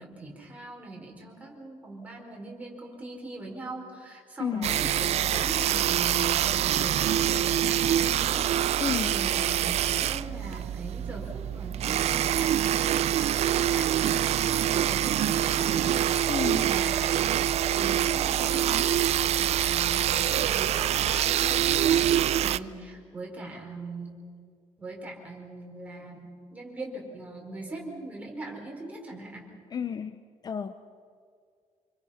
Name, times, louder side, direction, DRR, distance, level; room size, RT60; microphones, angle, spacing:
voice 1, 0.0-8.8 9.1-12.7 13.5-17.3 17.7-24.1 24.8-29.5, right 2 dB, 10° right, -1 dB, 4.8 m, -41 dB
voice 2, 4.4-4.8 8.8-9.2 16.3-16.7 29.7-30.8, left 7 dB, 35° left, 10 dB, 0.7 m, -32 dB
sound 1, 4.6-22.6, right 11 dB, 65° right, 0.5 m, -25 dB
27.0 x 24.5 x 5.8 m, 2.2 s
wide cardioid pair, 175°, 12 cm